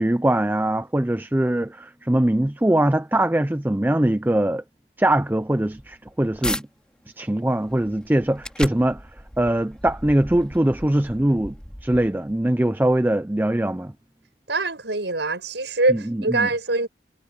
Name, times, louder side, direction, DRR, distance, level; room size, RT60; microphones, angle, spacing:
voice 1, 0.0-4.6 5.0-6.7 7.2-9.0 9.4-11.6 11.8-13.9 15.9-16.5, right 1 dB, 10° right, 0.4 m, -22 dB
sound 1, 5.7-6.6 7.2-12.4, left 1 dB, 5° left, 2.5 m, -36 dB
voice 2, 14.5-16.9, right 2 dB, 85° right, 6.1 m, -23 dB
head